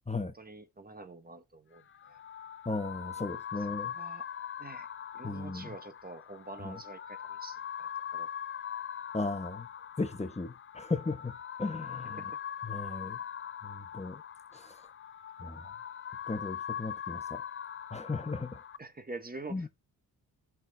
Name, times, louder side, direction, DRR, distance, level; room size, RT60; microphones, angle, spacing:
voice 1, 0.3-1.8 2.1-2.2 3.9-4.2 4.6-4.9 5.1-8.3 12.2-12.3 18.8-19.7, right 3 dB, 25° right, 1.2 m, -46 dB
sound 1, 1.8-18.8, left 8 dB, 30° left, 0.5 m, -42 dB
voice 2, 2.6-3.9 5.2-5.7 6.6-6.8 9.1-9.7 10.0-12.2 12.6-13.2 13.6-14.2 14.5-14.7 15.4-15.6 16.3-17.4 17.9-18.6 19.5-19.7, left 3 dB, 15° left, 1.2 m, -36 dB
15.0 x 6.1 x 2.2 m
supercardioid pair, 55°, 39 cm